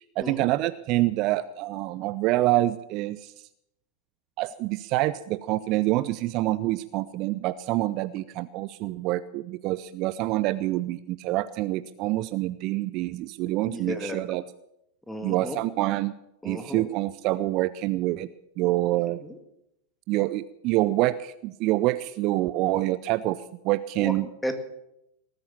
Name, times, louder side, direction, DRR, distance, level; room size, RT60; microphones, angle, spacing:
voice 1, 0.2-3.3 4.4-14.4 15.2-16.2 16.4-18.3 18.6-19.2 20.1-23.4 23.6-24.3, right 17 dB, 40° right, 16 dB, 0.5 m, -26 dB
voice 2, 13.6-14.3 15.1-15.6 16.4-16.9 19.2-19.4 24.0-24.1 24.4-24.5, left 1 dB, 5° left, 7 dB, 1.8 m, -34 dB
19.0 x 9.0 x 7.1 m, 0.83 s
figure-of-eight pair, 90°, 0 cm